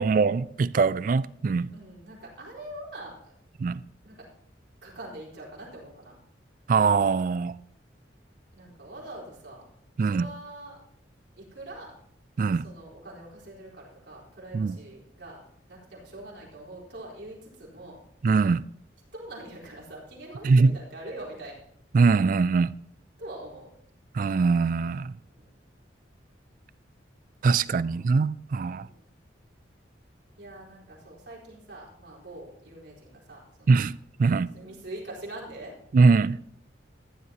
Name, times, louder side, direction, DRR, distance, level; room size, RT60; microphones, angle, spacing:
voice 1, 0.0-1.7 3.6-3.8 6.7-7.5 10.0-10.3 12.4-12.7 14.5-14.8 18.2-18.7 20.4-20.7 21.9-22.7 24.1-25.1 27.4-28.9 33.7-34.5 35.9-36.4, right 4 dB, 45° right, 0.3 m, -22 dB
voice 2, 1.7-3.3 4.0-4.3 4.8-6.1 8.5-9.7 10.0-10.8 11.4-11.9 12.6-15.4 15.7-18.0 19.1-21.6 23.2-23.7 25.3-25.5 27.7-28.0 28.8-29.0 30.4-33.8 34.5-35.7, right 1 dB, 70° right, 4.2 m, -43 dB
15.0 x 11.0 x 2.9 m
head